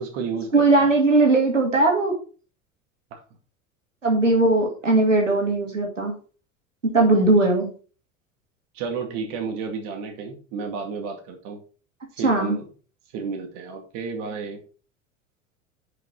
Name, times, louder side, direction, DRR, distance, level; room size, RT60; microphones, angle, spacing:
voice 1, 0.0-0.9 3.1-3.2 8.7-11.6 12.1-12.7 13.1-14.6, right 5 dB, 55° right, 4 dB, 2.2 m, -32 dB
voice 2, 0.5-2.2 4.0-6.1 6.8-7.7 12.2-12.6, right 2 dB, 90° right, 1 dB, 2.7 m, -19 dB
10.5 x 5.9 x 4.4 m, 0.37 s
figure-of-eight pair, 75°, 37 cm